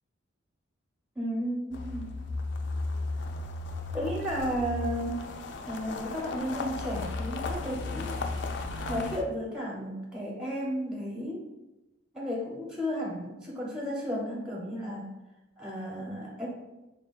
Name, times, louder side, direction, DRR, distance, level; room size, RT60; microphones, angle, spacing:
voice 1, 1.2-2.1 3.9-5.3 5.7-8.1 8.9-11.4 12.1-15.1 15.6-16.5, equal, 5° right, -3 dB, 0.5 m, -33 dB
sound 1, 1.7-9.2, left 3 dB, 60° left, 0.3 m, -35 dB
3.5 x 2.2 x 3.9 m, 1.0 s
head